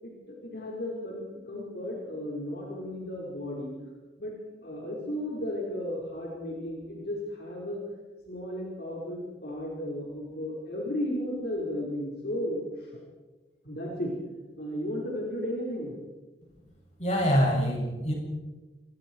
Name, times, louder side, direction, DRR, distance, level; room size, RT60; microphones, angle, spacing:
voice 1, 0.0-3.7 4.2-4.3 4.6-7.8 8.3-13.0 13.6-14.1 14.6-15.9, left 1 dB, 60° left, -3 dB, 5.2 m, -34 dB
voice 2, 17.0-18.1, equal, 40° left, -1 dB, 7.9 m, -25 dB
28.0 x 24.0 x 4.8 m, 1.2 s
head